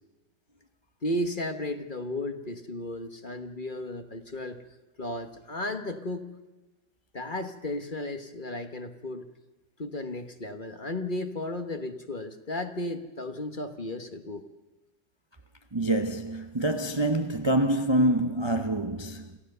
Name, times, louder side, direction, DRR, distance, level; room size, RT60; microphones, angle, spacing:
voice 1, 1.0-4.6 5.0-6.3 7.1-9.3 9.8-14.4, left 1 dB, 30° left, 1.1 m, -34 dB
voice 2, 15.7-19.4, right 1 dB, 30° right, 0.5 m, -26 dB
27.0 x 15.5 x 6.7 m
omnidirectional pair, 2.0 m